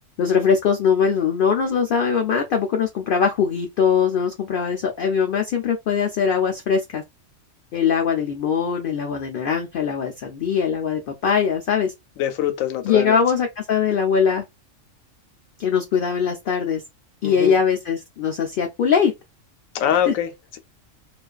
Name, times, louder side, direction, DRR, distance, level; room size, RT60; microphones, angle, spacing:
voice 1, 0.2-7.0 7.7-11.9 12.8-14.4 15.6-16.8 17.2-19.1 19.9-20.1, left 6 dB, 65° left, 0.5 m, -21 dB
voice 2, 12.2-13.2 17.2-17.5 19.7-20.3, left 10 dB, 90° left, 1.0 m, -23 dB
2.5 x 2.3 x 2.3 m
omnidirectional pair, 1.3 m